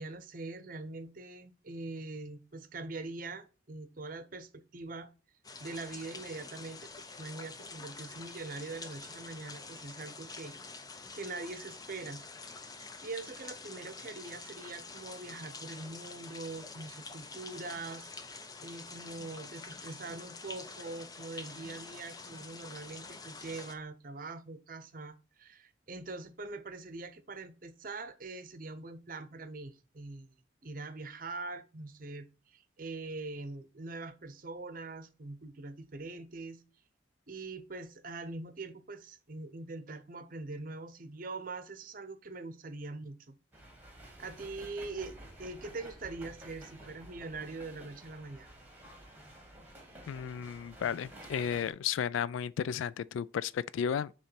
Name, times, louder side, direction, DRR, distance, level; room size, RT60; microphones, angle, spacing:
voice 1, 0.0-5.1 5.6-6.9 7.2-10.6 11.1-12.2 12.8-18.1 18.6-30.3 30.6-36.6 37.3-43.4 44.2-48.5, right 3 dB, 45° right, 0.7 m, -43 dB
sound 1, 5.4-23.7, left 4 dB, 20° left, 0.5 m, -47 dB
sound 2, 43.5-51.7, right 1 dB, 10° right, 1.7 m, -51 dB
voice 2, 50.1-54.1, left 8 dB, 85° left, 0.3 m, -33 dB
6.8 x 3.2 x 5.8 m
head